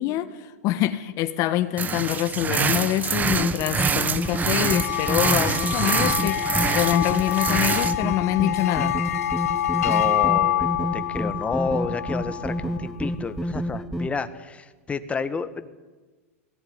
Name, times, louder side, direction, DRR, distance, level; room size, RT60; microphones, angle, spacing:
voice 1, 0.0-9.0, left 13 dB, 45° left, 9 dB, 1.5 m, -25 dB
sound 1, 1.8-7.9, right 6 dB, 20° right, 1.3 m, -26 dB
sound 2, 3.2-14.1, equal, 5° right, 1.3 m, -30 dB
sound 3, 4.2-12.9, left 12 dB, 80° left, 0.7 m, -27 dB
voice 2, 9.7-15.7, left 4 dB, 15° left, 11 dB, 1.6 m, -30 dB
20.5 x 18.0 x 9.7 m, 1.3 s
hypercardioid pair, 115°, 8 cm